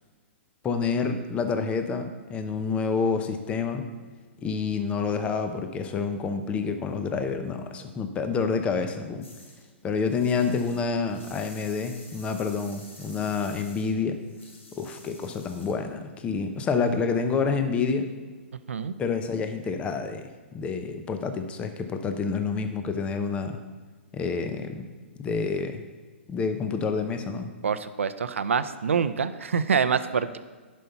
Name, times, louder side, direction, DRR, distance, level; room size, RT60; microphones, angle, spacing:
voice 1, 0.6-3.9 4.4-9.3 9.8-14.2 14.7-18.1 19.0-23.6 24.1-24.8 25.2-25.8 26.3-27.5, left 5 dB, 15° left, 8 dB, 0.7 m, -28 dB
sound 1, 9.2-9.7 10.0-15.8, left 2 dB, 80° left, 2.2 m, -50 dB
voice 2, 27.6-30.4, right 6 dB, 80° right, 12 dB, 0.6 m, -26 dB
10.5 x 5.5 x 5.8 m, 1.4 s
hypercardioid pair, 135°, 7 cm